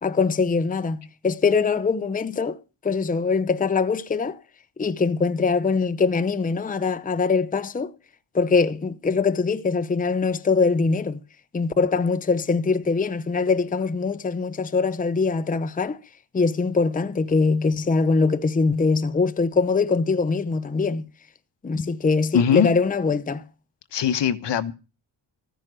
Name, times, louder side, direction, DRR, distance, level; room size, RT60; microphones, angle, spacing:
voice 1, 0.0-2.6 2.8-4.4 4.8-7.9 8.3-11.2 11.5-16.0 16.3-21.1 21.6-23.4, left 4 dB, 20° left, 0.7 m, -22 dB
voice 2, 22.3-22.7 23.9-24.7, left 8 dB, 65° left, 1.2 m, -21 dB
14.5 x 10.5 x 6.2 m
wide cardioid pair, 145°, 45 cm